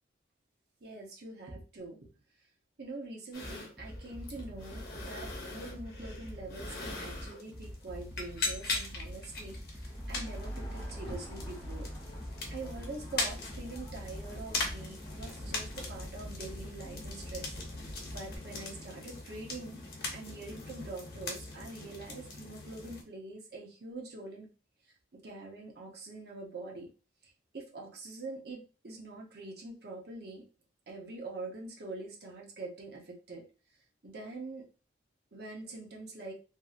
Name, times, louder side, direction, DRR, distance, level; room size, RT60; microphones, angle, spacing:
voice 1, 0.8-2.0 2.8-11.9 12.5-19.8 20.1-24.5 25.1-26.9 27.5-30.4 30.9-33.4 34.0-34.6 35.3-36.3, right 2 dB, 55° right, -1 dB, 0.8 m, -44 dB
sound 1, 3.3-23.0, left 3 dB, 55° left, 0.7 m, -41 dB
sound 2, 3.4-18.4, equal, 10° right, 0.6 m, -45 dB
sound 3, 9.7-16.0, equal, 15° left, 0.9 m, -46 dB
2.7 x 2.7 x 2.4 m, 0.35 s
head